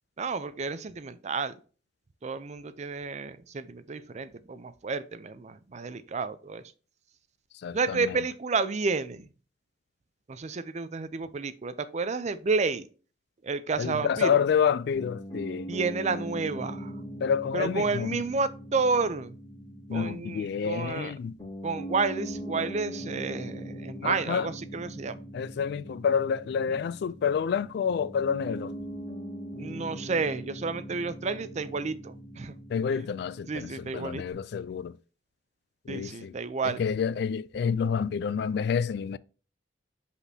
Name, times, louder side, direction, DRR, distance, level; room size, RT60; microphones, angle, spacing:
voice 1, 0.2-1.6 2.2-6.6 7.7-9.3 10.3-12.9 13.4-14.3 15.7-17.0 17.5-19.3 19.9-21.1 21.6-25.2 29.6-32.6 33.5-34.3 35.9-36.8, right 4 dB, 40° right, 0.5 m, -31 dB
voice 2, 7.6-8.2 13.8-15.7 17.2-18.2 19.9-21.3 24.0-24.5 25.3-28.7 32.7-35.0 35.9-36.4 36.6-39.2, left 7 dB, 65° left, 0.3 m, -28 dB
Piano, 14.9-34.3, equal, 25° left, 3.2 m, -41 dB
6.1 x 5.6 x 2.7 m
head